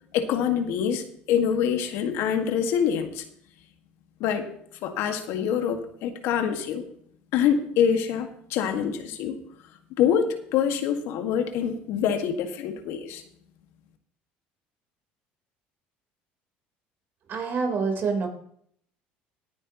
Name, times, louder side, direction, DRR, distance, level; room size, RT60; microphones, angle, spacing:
voice 1, 0.1-3.2 4.2-4.5 4.8-6.8 7.3-9.4 10.0-13.2, left 8 dB, 70° left, 5 dB, 1.9 m, -25 dB
voice 2, 17.3-18.3, right 5 dB, 50° right, 2 dB, 3.9 m, -26 dB
18.0 x 9.8 x 3.1 m, 0.65 s
supercardioid pair, 90°, 4 cm